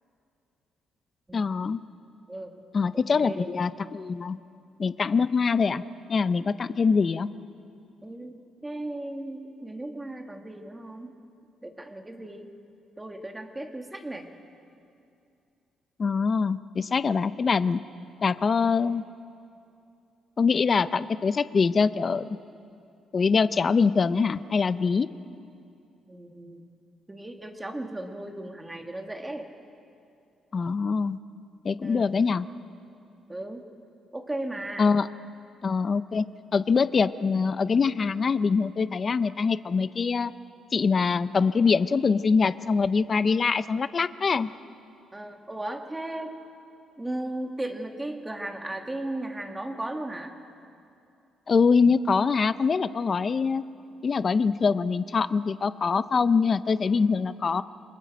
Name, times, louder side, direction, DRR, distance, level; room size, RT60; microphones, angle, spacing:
voice 1, 1.3-1.8 2.7-4.4 4.8-5.8 6.1-7.3 16.0-17.8 18.2-19.0 20.4-22.4 23.1-25.1 30.5-31.2 31.6-32.5 34.8-35.1 35.6-36.2 36.5-40.3 40.7-44.5 51.5-53.6 54.0-57.6, left 5 dB, 30° left, 14 dB, 0.5 m, -24 dB
voice 2, 2.3-2.6 3.2-3.5 8.0-8.3 8.6-11.2 11.6-12.5 13.0-14.3 26.1-26.6 27.1-29.5 31.8-32.1 33.3-33.6 34.1-34.9 45.1-46.4 47.0-50.3, right 1 dB, 10° right, 4 dB, 1.5 m, -36 dB
28.0 x 24.0 x 5.2 m, 2.6 s
cardioid pair, 170°, 0 cm